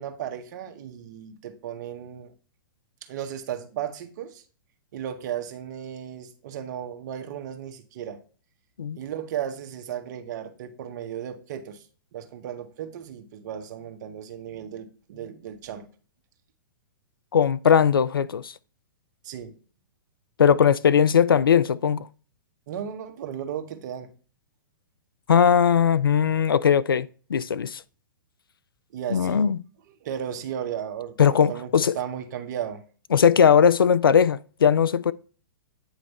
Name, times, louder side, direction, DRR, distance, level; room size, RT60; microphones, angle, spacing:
voice 1, 0.0-2.3 3.0-4.4 4.9-8.2 8.9-11.9 12.1-15.9 19.2-19.5 22.7-24.1 28.9-29.5 30.0-32.8, right 9 dB, 55° right, 1.1 m, -35 dB
voice 2, 17.3-18.5 20.4-22.1 25.3-27.8 29.1-29.6 31.2-31.9 33.1-35.1, left 7 dB, 85° left, 0.4 m, -19 dB
9.0 x 3.2 x 4.1 m
hypercardioid pair, 120°, 11 cm